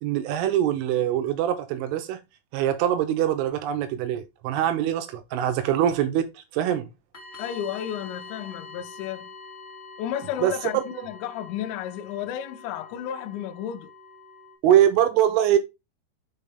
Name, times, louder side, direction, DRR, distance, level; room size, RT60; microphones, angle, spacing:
voice 1, 0.0-2.2 2.5-6.9 10.4-11.1 14.6-15.6, right 11 dB, 80° right, 3.2 m, -23 dB
sound 1, 7.1-14.5, left 4 dB, 50° left, 0.5 m, -44 dB
voice 2, 7.4-9.3 10.0-13.9, left 10 dB, 90° left, 2.5 m, -32 dB
6.7 x 5.5 x 3.3 m
omnidirectional pair, 6.0 m